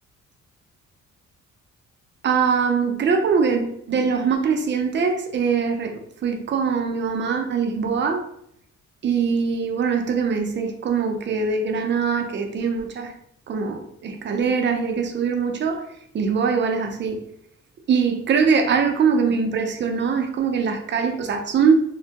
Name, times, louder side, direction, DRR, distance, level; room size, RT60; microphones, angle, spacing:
voice 1, 2.2-8.3 9.0-13.2 13.5-17.2 17.9-21.8, right 5 dB, 40° right, 0.5 m, -22 dB
2.6 x 2.2 x 2.8 m
cardioid pair, 90°, 30 cm